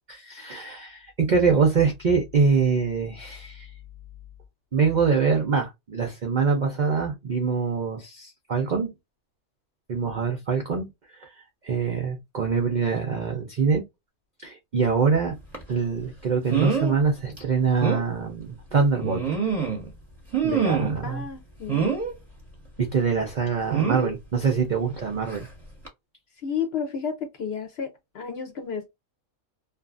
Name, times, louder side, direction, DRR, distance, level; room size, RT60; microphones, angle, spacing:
voice 1, 0.1-3.7 4.7-8.9 9.9-11.3 11.6-13.8 14.4-15.4 15.7-19.3 20.4-21.2 22.8-25.5, right 5 dB, 65° right, 0.4 m, -24 dB
sound 1, 15.5-15.7 16.5-16.9 17.4-17.5 17.8-18.1 19.0-19.9 20.3-21.1 21.7-22.1 23.7-24.1 25.3-25.5 25.8-25.9, right 6 dB, 10° right, 0.9 m, -25 dB
voice 2, 21.0-21.8 26.4-28.9, left 7 dB, 55° left, 0.8 m, -32 dB
2.6 x 2.4 x 2.4 m
omnidirectional pair, 1.5 m